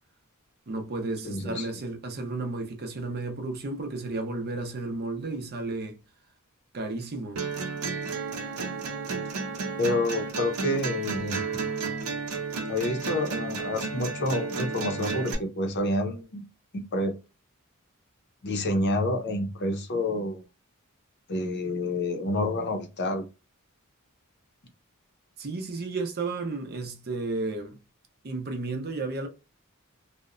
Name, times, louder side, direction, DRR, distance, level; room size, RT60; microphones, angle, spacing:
voice 1, 0.7-6.0 6.7-7.4 25.4-27.8 28.2-29.3, right 3 dB, 45° right, 0.6 m, -33 dB
voice 2, 1.2-1.7 9.8-11.4 12.7-16.4 16.7-17.1 18.4-20.4 21.3-23.2, left 1 dB, 50° left, 0.6 m, -28 dB
sound 1, 7.4-15.3, right 4 dB, 85° right, 0.6 m, -32 dB
2.8 x 2.1 x 2.4 m
head